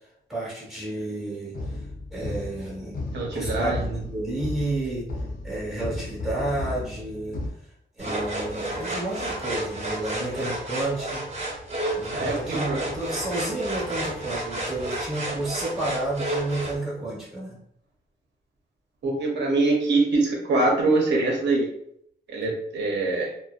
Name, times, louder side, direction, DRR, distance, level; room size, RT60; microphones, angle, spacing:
voice 1, 0.3-1.8 2.1-3.0 3.3-5.1 5.4-7.4 8.0-11.2 11.9-17.6, right 2 dB, ahead, -6 dB, 1.0 m, -31 dB
sound 1, 1.5-7.5, left 2 dB, 50° left, 0.5 m, -34 dB
voice 2, 3.1-3.9 12.1-12.9 19.0-21.7 22.3-23.3, right 3 dB, 75° right, -2 dB, 0.7 m, -24 dB
sound 2, 8.0-16.8, right 1 dB, 35° right, 0.8 m, -31 dB
2.6 x 2.0 x 2.3 m, 0.70 s
wide cardioid pair, 125°, 18 cm